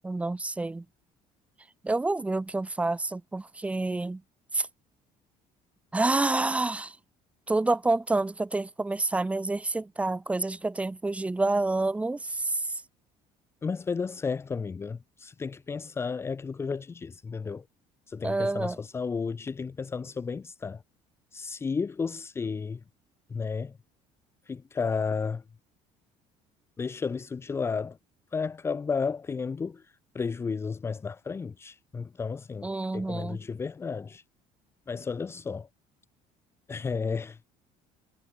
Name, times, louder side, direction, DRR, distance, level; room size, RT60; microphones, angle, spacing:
voice 1, 0.0-0.8 1.8-4.2 4.5-4.7 5.9-7.0 7.5-12.6 18.2-18.8 32.6-33.4, right 2 dB, 10° right, 3.7 m, -28 dB
voice 2, 13.6-17.6 18.1-20.8 21.3-22.8 23.3-23.8 24.4-25.4 26.8-28.0 28.3-34.2 34.9-35.7 36.7-37.4, left 5 dB, 20° left, 1.6 m, -33 dB
cardioid pair, 170°, 14 cm